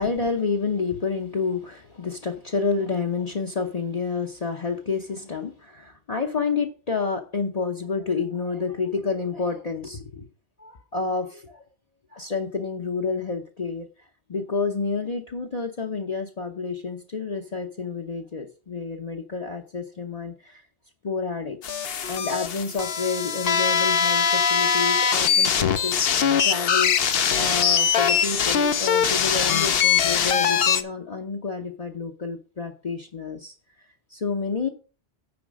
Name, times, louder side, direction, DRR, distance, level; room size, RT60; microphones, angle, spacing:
voice 1, 0.0-10.3 10.6-11.6 12.1-20.6 21.0-21.6 21.9-26.0 26.4-34.7, left 4 dB, 40° left, 0.9 m, -29 dB
sound 1, 21.6-30.8, left 7 dB, 70° left, 1.0 m, -22 dB
9.6 x 4.4 x 6.3 m
omnidirectional pair, 1.1 m